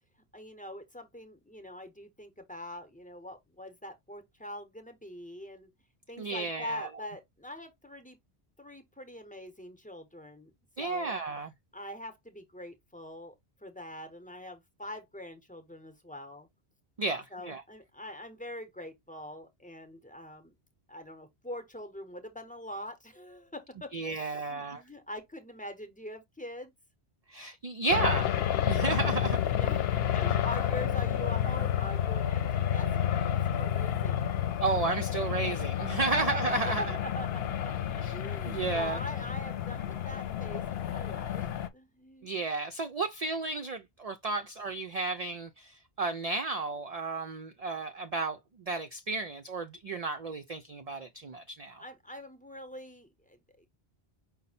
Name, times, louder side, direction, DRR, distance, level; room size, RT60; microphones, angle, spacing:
voice 1, 0.3-5.7 6.1-8.2 8.6-10.5 10.8-11.2 11.7-13.3 13.6-16.5 17.3-20.5 20.9-26.7 29.4-34.4 36.1-36.3 36.6-42.3 51.7-53.7, left 1 dB, 10° left, 0.8 m, -43 dB
voice 2, 6.2-6.9 10.8-11.5 17.0-17.6 23.9-24.8 27.3-28.3 28.7-29.4 34.6-37.0 38.0-38.1 38.5-39.0 42.2-51.8, right 3 dB, 50° right, 0.5 m, -33 dB
sound 1, 27.9-41.7, left 10 dB, 70° left, 0.8 m, -30 dB
5.3 x 2.1 x 4.1 m
omnidirectional pair, 1.1 m